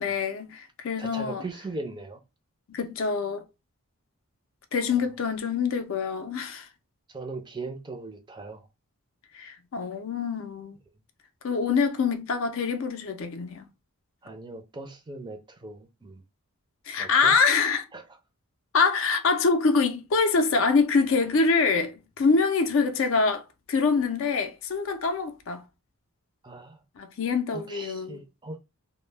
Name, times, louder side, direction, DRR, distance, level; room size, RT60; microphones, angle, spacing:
voice 1, 0.0-1.4 2.7-3.4 4.7-6.7 9.3-10.8 11.4-13.7 16.9-17.9 18.7-25.6 27.0-28.2, left 4 dB, 60° left, 0.4 m, -25 dB
voice 2, 1.0-2.2 5.0-5.1 7.1-8.7 14.2-16.2 17.0-17.4 17.9-18.0 26.4-26.8 27.5-28.6, right 3 dB, 20° right, 0.4 m, -39 dB
2.1 x 2.0 x 3.1 m
head